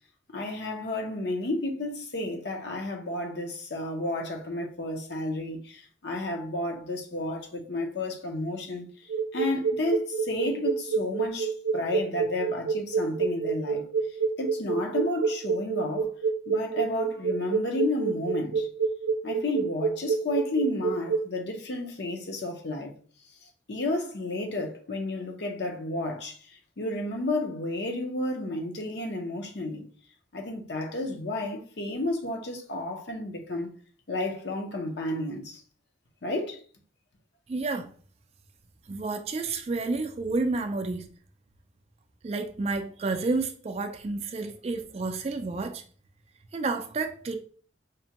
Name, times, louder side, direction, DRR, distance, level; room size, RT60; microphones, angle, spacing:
voice 1, 0.3-8.9 9.3-13.8 14.4-16.1 16.5-18.7 19.2-22.9 23.4-29.9 30.3-33.7 34.1-35.6 36.2-36.6, left 2 dB, 60° left, 0.7 m, -32 dB
sound 1, 9.1-21.2, right 5 dB, 85° right, 0.5 m, -27 dB
voice 2, 37.5-37.9 38.9-41.1 42.2-45.8 46.5-47.4, right 3 dB, 35° right, 0.3 m, -30 dB
5.1 x 2.2 x 2.8 m
head